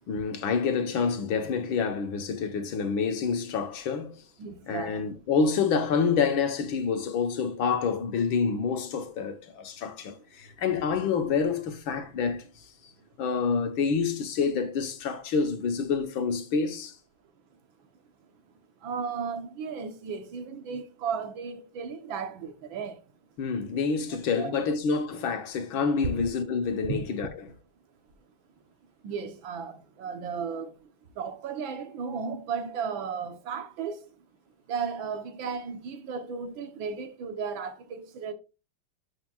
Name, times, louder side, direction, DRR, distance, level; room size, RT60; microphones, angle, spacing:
voice 1, 0.1-4.2 4.7-12.5 13.2-17.0 23.4-27.3, left 5 dB, 80° left, 1.9 m, -27 dB
voice 2, 4.4-5.2 18.8-23.0 24.1-24.5 26.0-26.3 26.8-27.0 29.0-34.2 34.7-38.3, right 5 dB, 75° right, 1.8 m, -35 dB
12.0 x 5.8 x 2.4 m
omnidirectional pair, 2.2 m